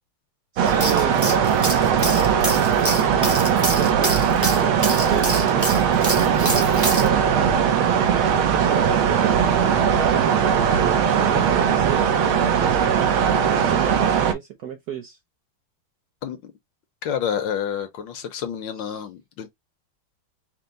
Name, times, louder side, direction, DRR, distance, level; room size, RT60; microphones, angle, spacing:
voice 1, 0.5-1.2 2.0-3.1 3.5-6.0 6.3-7.7 8.5-12.1 12.5-15.2 18.7-19.0, right 8 dB, 70° right, 0.9 m, -33 dB
sound 1, 0.6-14.3, right 8 dB, 90° right, 1.6 m, -19 dB
sound 2, 0.7-7.1, right 1 dB, 20° right, 0.4 m, -27 dB
voice 2, 17.0-19.5, left 8 dB, 70° left, 1.4 m, -29 dB
4.5 x 2.0 x 3.8 m
omnidirectional pair, 2.3 m